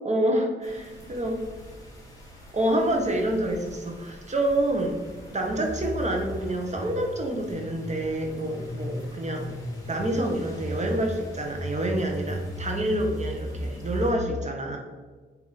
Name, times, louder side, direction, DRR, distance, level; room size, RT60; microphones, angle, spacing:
voice 1, 0.0-1.4 2.5-5.0 5.3-9.5 9.9-14.8, right 1 dB, 35° right, 2 dB, 1.0 m, -27 dB
sound 1, 0.6-14.1, equal, 15° left, 1.7 m, -37 dB
8.5 x 2.9 x 4.1 m, 1.4 s
wide cardioid pair, 115°, 20 cm